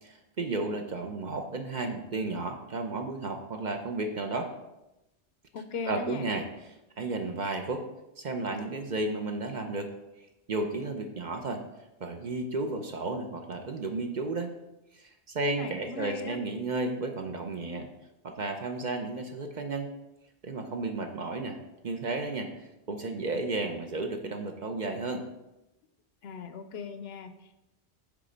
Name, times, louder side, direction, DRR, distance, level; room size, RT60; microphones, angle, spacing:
voice 1, 0.0-4.5 5.9-6.5 7.0-7.8 8.2-9.9 10.5-11.6 12.0-14.5 14.9-17.9 18.2-19.9 20.4-21.6 21.8-22.5 22.9-25.2, right 3 dB, 50° right, 4 dB, 0.7 m, -33 dB
voice 2, 5.5-6.3 15.5-16.4 26.2-27.6, left 5 dB, 70° left, 9 dB, 0.8 m, -38 dB
8.5 x 3.3 x 5.1 m, 0.94 s
omnidirectional pair, 1.1 m